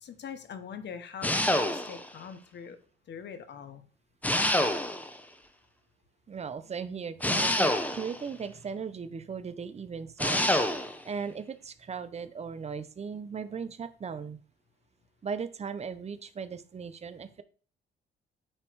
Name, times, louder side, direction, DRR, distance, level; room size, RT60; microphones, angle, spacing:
voice 1, 0.0-2.8 3.1-3.8, left 7 dB, 60° left, 9 dB, 1.1 m, -43 dB
sound 1, 1.2-2.1 4.2-5.2 7.2-8.2 10.2-11.0, left 1 dB, 10° left, 0.9 m, -27 dB
voice 2, 6.3-14.4 15.2-17.4, right 6 dB, 35° right, 11 dB, 0.7 m, -38 dB
8.9 x 3.1 x 4.6 m, 0.41 s
cardioid pair, 90°, 20 cm